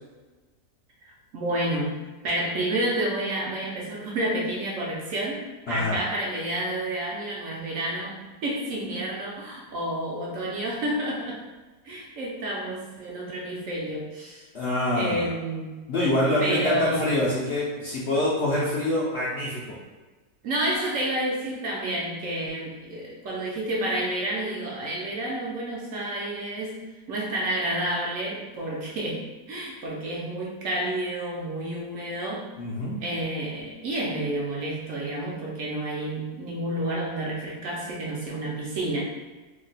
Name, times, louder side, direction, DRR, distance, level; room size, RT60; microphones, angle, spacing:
voice 1, 1.0-11.4 11.8-14.5 15.0-15.8 16.4-17.1 20.4-26.8 27.1-32.5 33.0-39.0, right 1 dB, 65° right, -4 dB, 0.9 m, -30 dB
voice 2, 5.7-6.0 14.5-15.3 15.9-19.8 32.6-33.0, left 1 dB, 65° left, -6 dB, 0.6 m, -25 dB
2.8 x 2.2 x 3.9 m, 1.3 s
omnidirectional pair, 1.7 m